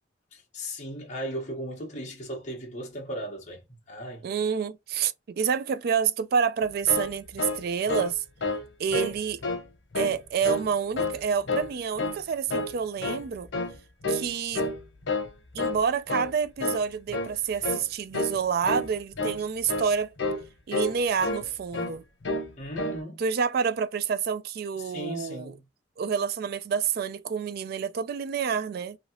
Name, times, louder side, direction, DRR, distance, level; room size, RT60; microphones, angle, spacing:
voice 1, 0.3-4.3 22.6-23.2 24.8-25.6, equal, 40° left, 1.1 m, -37 dB
voice 2, 4.2-8.2 8.8-9.4 10.0-13.5 14.1-14.6 15.5-20.1 20.7-22.0 23.2-25.5 26.0-29.0, right 6 dB, 55° right, 0.3 m, -28 dB
sound 1, 6.6-8.1 8.4-8.7 8.9-9.6 9.9-10.7 11.0-11.7 12.0-12.2 12.5-13.3 13.5-13.8 14.0-14.3 14.5-15.3 15.6-15.8 16.1-16.3 16.6-16.9 17.1-17.4 17.6-17.8 18.1-18.4 18.6-18.9 19.1-19.4 19.7-19.9 20.2-20.4 20.7-21.5 21.7-21.9 22.2-22.5 22.8-23.0, left 2 dB, 85° left, 0.8 m, -29 dB
3.0 x 2.8 x 2.8 m
head